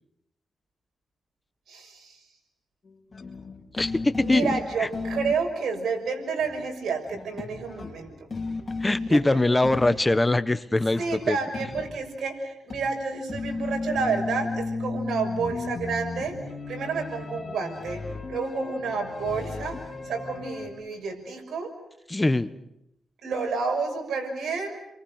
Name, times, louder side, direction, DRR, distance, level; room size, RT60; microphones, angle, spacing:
voice 1, 1.7-2.2 4.2-8.1 8.9-9.4 11.0-16.4 16.7-18.0 18.3-19.8 20.0-21.7 23.2-24.8, right 4 dB, 75° right, 3 dB, 6.2 m, -30 dB
sound 1, 2.9-5.4 6.1-6.2 6.4-6.7 7.1-9.3 9.6-10.2 10.9-12.1 12.7-20.7, left 3 dB, 35° left, 4.7 m, -34 dB
voice 2, 3.8-4.5 4.8-4.9 8.8-11.4 22.1-22.5, left 2 dB, 15° left, 13 dB, 1.2 m, -22 dB
29.5 x 23.5 x 6.5 m, 0.82 s
cardioid pair, 95°, 0 cm